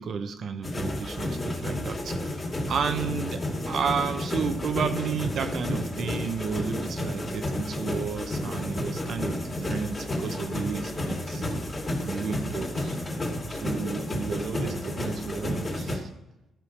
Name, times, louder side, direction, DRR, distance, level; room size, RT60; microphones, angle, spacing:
voice 1, 0.0-2.4 2.7-11.4 12.0-13.0 13.5-16.1, right 6 dB, 60° right, 8 dB, 1.2 m, -32 dB
sound 1, 0.6-16.0, left 1 dB, 25° left, 2.8 m, -31 dB
13.0 x 5.0 x 6.6 m, 0.94 s
cardioid pair, 90°, 0 cm